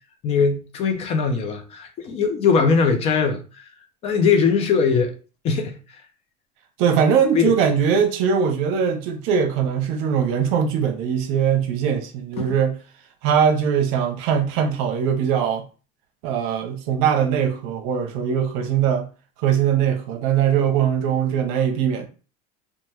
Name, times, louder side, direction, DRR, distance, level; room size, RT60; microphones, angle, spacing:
voice 1, 0.2-3.7 4.0-5.1 5.4-5.8 7.3-7.5 12.4-12.5, left 5 dB, 35° left, 0.5 m, -20 dB
voice 2, 6.8-12.8 13.2-15.6 16.2-19.1 19.4-22.1, right 7 dB, 70° right, 0.7 m, -21 dB
2.9 x 2.1 x 3.2 m
cardioid pair, 155°, 18 cm